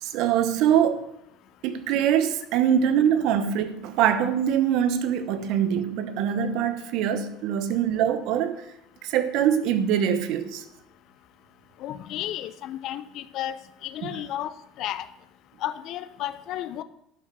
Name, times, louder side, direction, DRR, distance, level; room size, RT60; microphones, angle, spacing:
voice 1, 0.0-1.0 1.6-8.6 9.0-10.6 14.0-14.2, right 9 dB, 60° right, 0.9 m, -23 dB
voice 2, 11.8-13.6 13.8-15.1 15.6-16.8, left 12 dB, 50° left, 0.6 m, -33 dB
11.0 x 5.2 x 6.8 m
cardioid pair, 140°, 0 cm